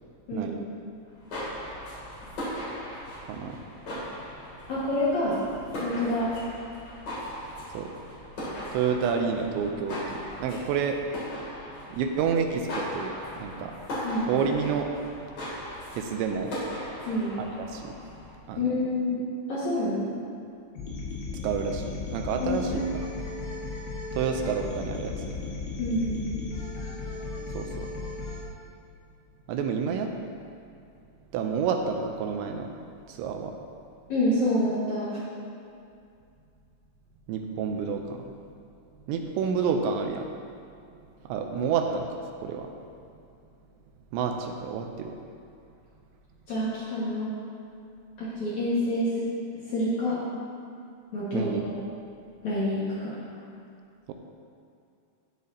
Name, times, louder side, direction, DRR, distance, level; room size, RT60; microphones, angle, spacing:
sound 1, 1.0-18.4, equal, 40° left, 3.2 m, -38 dB
voice 1, 3.3-3.6 7.7-7.9 8.7-11.0 11.9-13.8 14.3-14.9 15.9-16.6 17.4-17.9 18.5-18.7 21.4-23.1 24.1-25.4 27.5-27.9 29.5-30.1 31.3-32.8 33.1-33.6 37.3-38.2 39.1-40.3 41.3-42.7 44.1-45.2 51.3-51.6 54.1-54.2, right 6 dB, 85° right, 4 dB, 2.8 m, -29 dB
voice 2, 4.7-5.4 5.8-6.3 14.0-14.3 17.1-17.3 18.6-19.2 19.5-20.1 22.4-22.8 25.8-26.2 34.1-35.2 46.5-47.3 48.2-49.3 49.7-50.2 51.1-51.8 52.4-53.1, left 1 dB, 60° left, -9 dB, 2.1 m, -27 dB
sound 2, 20.8-28.4, left 3 dB, 85° left, 4.2 m, -35 dB
16.5 x 6.9 x 2.8 m, 2.5 s
omnidirectional pair, 5.3 m